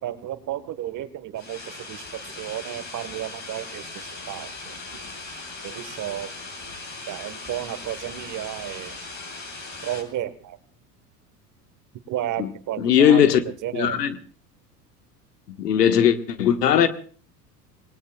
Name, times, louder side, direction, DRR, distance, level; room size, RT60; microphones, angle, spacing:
voice 1, 0.0-2.0 2.4-4.7 5.6-6.3 7.1-8.9 9.8-10.6 12.1-13.2 13.6-14.0, right 12 dB, 40° right, 1.5 m, -32 dB
sound 1, 1.4-10.0, left 3 dB, 35° left, 7.3 m, -39 dB
voice 2, 12.8-13.4 13.7-14.2 15.6-16.9, left 9 dB, 75° left, 1.6 m, -18 dB
27.5 x 19.5 x 2.4 m
figure-of-eight pair, 80°, 48 cm